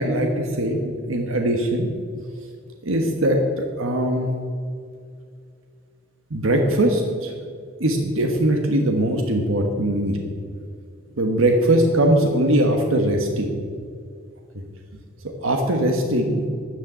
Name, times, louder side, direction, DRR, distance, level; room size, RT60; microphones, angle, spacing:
voice 1, 0.0-1.9 2.8-4.3 6.3-7.3 7.8-10.2 11.2-13.5 15.4-16.4, right 1 dB, 70° right, 3 dB, 1.3 m, -21 dB
13.5 x 6.5 x 9.0 m, 2.3 s
head